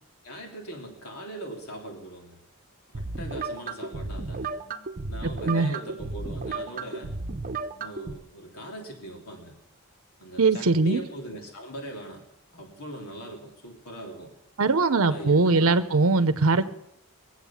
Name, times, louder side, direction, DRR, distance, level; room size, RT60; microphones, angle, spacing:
voice 1, 0.2-2.4 2.9-4.5 5.1-7.1 7.8-9.5 10.2-12.2 12.5-14.3 15.0-16.0, right 1 dB, 80° left, 1 dB, 3.3 m, -40 dB
sound 1, 2.9-8.1, right 3 dB, 40° right, 0.8 m, -34 dB
voice 2, 10.4-11.1 14.6-16.6, right 3 dB, 70° right, 10 dB, 0.8 m, -21 dB
21.5 x 7.9 x 7.2 m, 0.82 s
head